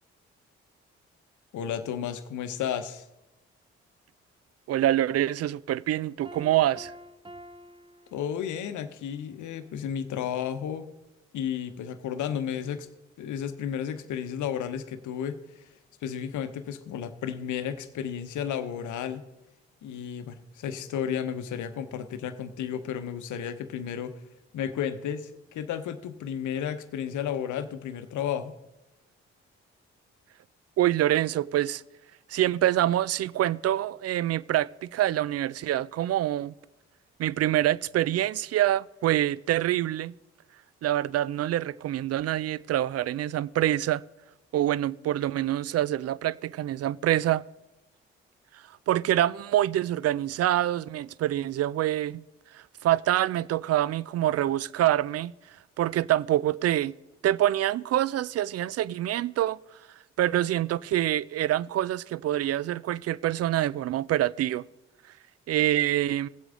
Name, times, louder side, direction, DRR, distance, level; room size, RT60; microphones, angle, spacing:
voice 1, 1.5-3.0 8.1-10.9 11.3-12.9 13.2-15.6 16.0-19.2 19.8-24.1 24.5-28.5, left 8 dB, 70° left, 0.8 m, -33 dB
voice 2, 4.7-6.9 30.8-31.8 32.3-36.5 37.2-40.1 40.8-44.0 44.5-47.4 48.9-52.2 52.5-55.3 55.8-56.9 57.2-59.6 60.2-64.6 65.5-66.3, right 13 dB, 50° right, 0.4 m, -26 dB
Piano, 6.2-8.8, equal, 15° right, 0.9 m, -48 dB
16.5 x 7.9 x 3.8 m
hypercardioid pair, 40°, 31 cm